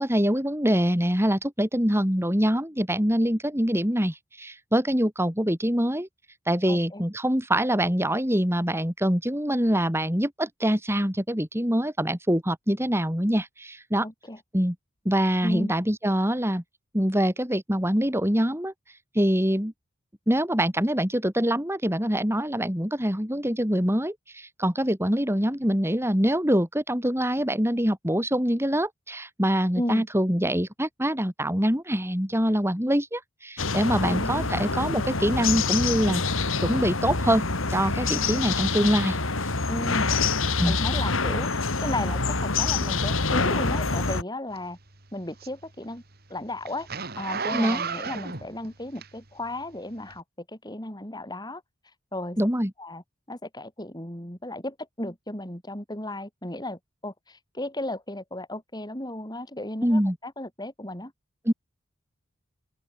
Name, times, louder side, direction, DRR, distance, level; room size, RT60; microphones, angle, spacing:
voice 1, 0.0-6.1 6.5-14.1 14.5-14.8 15.0-16.6 16.9-18.7 19.1-19.7 20.3-36.2 36.6-37.4 37.7-39.2 40.6-40.8 47.5-47.8 52.4-52.7 59.8-60.2 61.5-61.6, equal, 10° right, 5.8 m, -24 dB
voice 2, 6.7-7.0 14.0-14.4 15.4-15.7 29.8-30.1 33.9-34.6 39.7-40.1 40.6-44.8 45.1-46.0 46.3-46.9 47.2-50.2 50.5-51.6 52.1-52.4 52.8-53.0 53.3-61.1, left 1 dB, 20° left, 7.1 m, -34 dB
sound 1, 33.6-44.2, left 4 dB, 85° left, 2.9 m, -26 dB
Zipper (clothing), 44.6-49.5 50.1-50.2, right 5 dB, 50° right, 3.3 m, -34 dB
open air
head